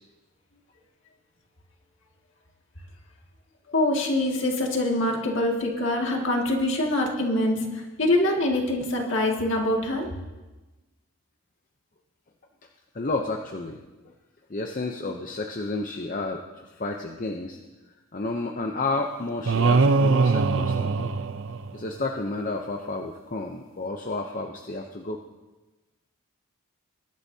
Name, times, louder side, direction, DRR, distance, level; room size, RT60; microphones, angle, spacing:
voice 1, 3.7-7.7 8.0-10.1, left 1 dB, 55° left, 0 dB, 2.1 m, -24 dB
voice 2, 12.9-14.1 14.5-17.6 18.1-21.1 21.7-25.2, left 2 dB, 35° left, 3 dB, 0.7 m, -31 dB
sound 1, 19.5-22.0, right 4 dB, 55° right, 0.5 m, -22 dB
21.0 x 12.0 x 2.8 m, 1.1 s
head